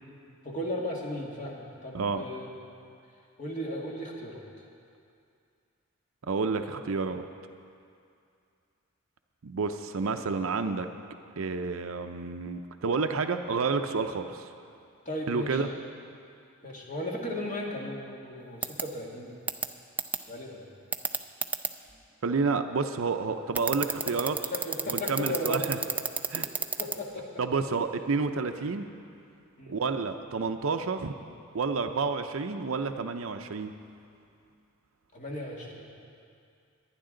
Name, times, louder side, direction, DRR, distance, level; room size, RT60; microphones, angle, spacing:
voice 1, 0.4-2.6 3.4-4.4 15.1-15.6 16.6-19.4 20.3-20.8 23.9-24.1 24.5-25.7 26.3-26.5 26.8-27.3 29.6-29.8 35.1-35.9, left 1 dB, 35° left, -2 dB, 1.9 m, -36 dB
voice 2, 6.3-7.2 9.4-10.9 11.4-14.5 15.3-15.7 22.2-24.3 24.9-25.8 26.3-26.5 27.4-28.9 29.7-31.1 31.5-33.7, right 4 dB, 75° right, 7 dB, 0.6 m, -29 dB
sound 1, 18.6-18.8 19.5-19.6 20.0-20.2 20.9-21.7 23.5-27.0, right 5 dB, 10° right, 0.4 m, -28 dB
22.0 x 9.8 x 3.8 m, 2.5 s
head